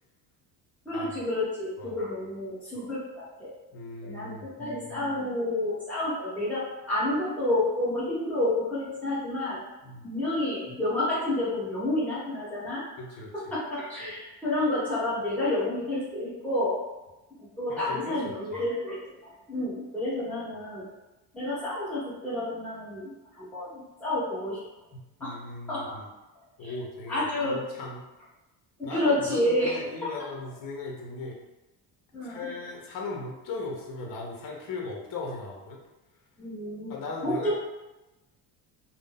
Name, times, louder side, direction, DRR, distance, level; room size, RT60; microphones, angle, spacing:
voice 1, 0.8-3.5 4.0-9.6 10.0-12.8 13.5-16.8 17.4-20.9 21.3-24.6 25.2-25.4 25.7-26.0 26.6-26.7 27.1-27.6 28.8-30.2 32.1-32.5 36.4-36.9 37.2-37.6, left 1 dB, 5° left, -10 dB, 1.2 m, -30 dB
voice 2, 3.7-4.5 9.8-10.0 13.0-13.3 17.7-18.2 18.5-18.6 24.9-26.1 26.6-28.0 28.8-31.4 32.2-35.8 36.9-37.5, left 3 dB, 50° left, -1 dB, 0.8 m, -38 dB
2.6 x 2.1 x 3.6 m, 1.0 s
cardioid pair, 155°, 43 cm